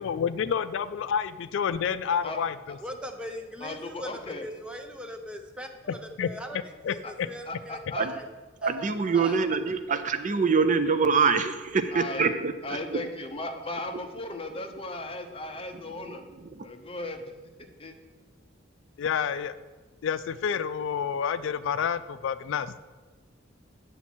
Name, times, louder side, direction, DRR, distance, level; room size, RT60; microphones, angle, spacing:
voice 1, 0.0-2.8 5.9-6.3 6.8-7.3 19.0-19.6 20.0-22.7, left 7 dB, 65° left, 14 dB, 0.3 m, -29 dB
voice 2, 2.8-8.3 8.6-9.4, equal, 5° right, 4 dB, 0.7 m, -41 dB
voice 3, 3.6-4.5 7.0-7.1 7.5-8.1 11.9-12.3 12.6-16.2 16.6-17.2 17.8-17.9, left 2 dB, 30° left, 5 dB, 0.7 m, -36 dB
voice 4, 8.6-12.5 12.9-13.0 16.6-16.7, right 5 dB, 40° right, 10 dB, 0.5 m, -24 dB
8.6 x 7.1 x 4.4 m, 1.3 s
head